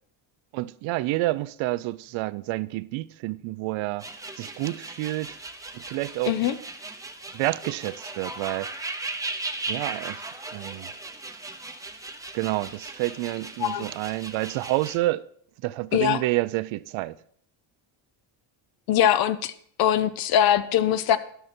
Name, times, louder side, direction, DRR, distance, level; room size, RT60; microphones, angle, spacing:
voice 1, 0.5-4.0 4.4-5.4 5.7-6.4 7.3-8.7 9.7-10.3 10.5-10.9 12.3-15.2 15.6-17.2, right 18 dB, 70° right, 0.7 m, -29 dB
sound 1, 4.0-15.0, right 2 dB, 5° right, 0.8 m, -37 dB
voice 2, 15.9-16.2 18.9-19.5 19.8-21.2, left 10 dB, 50° left, 0.7 m, -22 dB
12.5 x 12.5 x 4.4 m
cardioid pair, 175°, 49 cm